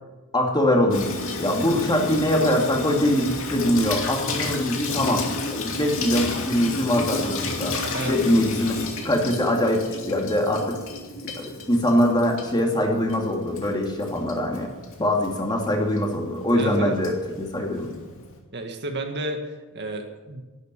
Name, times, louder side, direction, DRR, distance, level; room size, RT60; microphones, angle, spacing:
voice 1, 0.3-5.3 5.5-10.8 11.4-14.7 15.0-18.0, left 1 dB, 20° left, 1 dB, 2.6 m, -23 dB
Water tap faucet / Sink (filling or washing), 0.9-18.4, left 3 dB, 65° left, 2.6 m, -32 dB
voice 2, 16.5-17.0 18.5-19.5 19.7-20.4, right 2 dB, 50° right, 4 dB, 1.8 m, -31 dB
11.5 x 11.0 x 9.9 m, 1.2 s
head